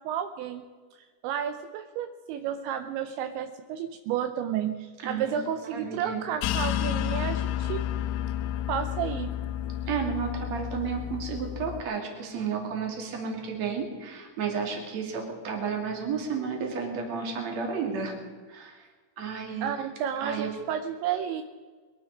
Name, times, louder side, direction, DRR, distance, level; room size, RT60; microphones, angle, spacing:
voice 1, 0.1-0.7 1.2-7.8 8.7-9.3 19.6-21.4, right 9 dB, 85° right, 8 dB, 2.7 m, -31 dB
voice 2, 5.0-5.4 5.7-6.2 9.9-18.2 18.5-18.9 19.2-19.7 20.2-20.5, right 6 dB, 45° right, 2 dB, 2.8 m, -32 dB
sound 1, 6.4-11.8, left 11 dB, 85° left, 3.2 m, -31 dB
22.0 x 13.0 x 4.7 m, 1.5 s
omnidirectional pair, 5.9 m